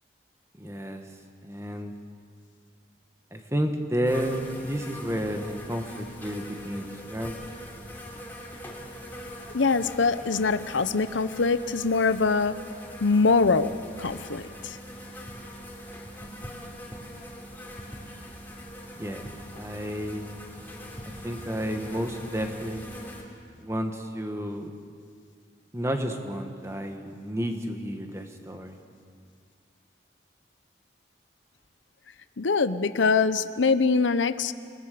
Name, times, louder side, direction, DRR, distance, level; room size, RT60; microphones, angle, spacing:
voice 1, 0.6-1.0 1.4-1.9 3.3-7.4 19.0-19.2 19.5-20.2 21.2-22.8 23.6-24.7 25.7-28.8, equal, 15° right, 4 dB, 1.6 m, -31 dB
sound 1, 4.0-23.2, equal, 10° left, 3.1 m, -42 dB
voice 2, 9.5-12.6 13.0-13.7 14.0-14.8 32.4-34.5, left 4 dB, 90° left, 12 dB, 0.8 m, -23 dB
28.0 x 20.0 x 6.8 m, 2.2 s
head